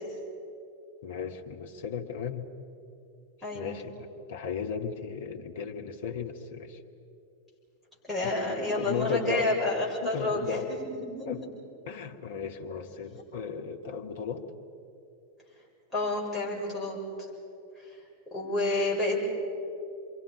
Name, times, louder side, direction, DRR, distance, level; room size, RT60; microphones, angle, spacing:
voice 1, 1.0-2.4 3.5-6.8 8.2-8.4 8.8-9.6 10.0-10.7 11.2-11.4 11.8-14.5, left 6 dB, 55° left, 3 dB, 1.6 m, -35 dB
voice 2, 3.4-3.8 8.1-11.3 15.9-17.0 17.8-17.9 18.3-19.2, left 2 dB, ahead, -7 dB, 7.1 m, -29 dB
28.5 x 24.0 x 5.2 m, 2.7 s
figure-of-eight pair, 90°, 0 cm